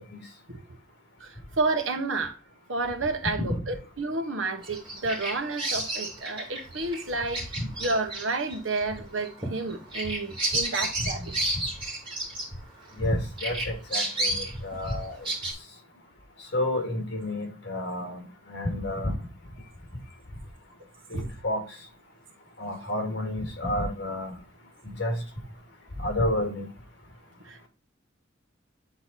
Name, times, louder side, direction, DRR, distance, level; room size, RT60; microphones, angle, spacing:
voice 1, 1.2-2.4 2.7-11.3 21.1-21.3 27.4-27.7, right 3 dB, 80° right, 1.2 m, -30 dB
Bird vocalization bird call bird song, 4.6-13.0 13.4-15.5, right 1 dB, 25° right, 2.6 m, -32 dB
voice 2, 13.0-15.2 16.5-19.2 21.1-21.6 22.6-24.3 24.8-25.2 26.0-26.7, left 1 dB, 60° left, 2.1 m, -30 dB
8.6 x 4.0 x 4.0 m
head